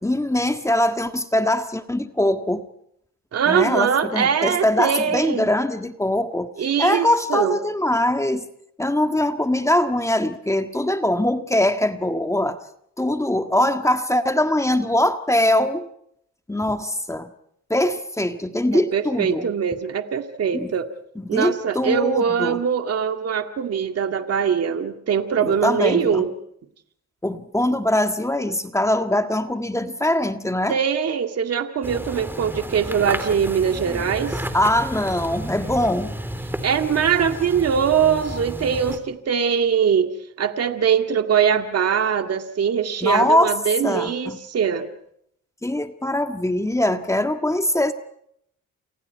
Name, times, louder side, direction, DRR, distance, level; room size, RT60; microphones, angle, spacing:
voice 1, 0.0-2.6 3.5-6.5 6.8-8.4 8.8-12.6 13.0-15.9 16.5-17.3 17.7-19.5 20.5-20.7 21.1-22.6 25.4-26.3 27.2-30.7 34.5-36.1 43.0-44.4 45.6-47.9, left 1 dB, 10° left, 7 dB, 1.7 m, -22 dB
voice 2, 3.3-5.5 6.6-7.6 18.7-20.9 21.3-26.3 30.7-34.4 36.6-44.9, right 7 dB, 55° right, 6 dB, 2.1 m, -22 dB
sound 1, 31.8-39.0, right 1 dB, 5° right, 3.6 m, -32 dB
29.0 x 28.5 x 4.7 m, 0.73 s
cardioid pair, 90°, 30 cm